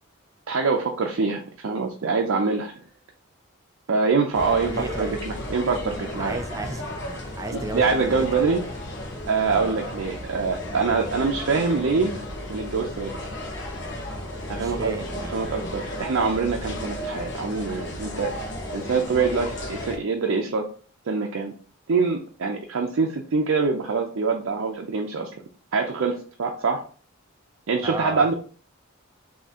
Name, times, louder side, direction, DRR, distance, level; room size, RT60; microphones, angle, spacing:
voice 1, 0.5-2.7 3.9-6.4 7.5-8.6 9.3-12.2 12.5-13.1 14.5-15.0 15.3-18.3 18.7-20.6 21.1-21.5 21.9-25.3 25.7-26.8 27.7-28.3, right 4 dB, 70° right, 2 dB, 0.5 m, -24 dB
sound 1, 4.3-20.0, left 1 dB, 55° left, 1.0 m, -34 dB
voice 2, 4.7-5.2 6.2-8.5 9.5-9.8 14.6-15.4 27.8-28.3, right 3 dB, 15° right, 6 dB, 0.3 m, -34 dB
3.6 x 2.8 x 4.2 m, 0.42 s
head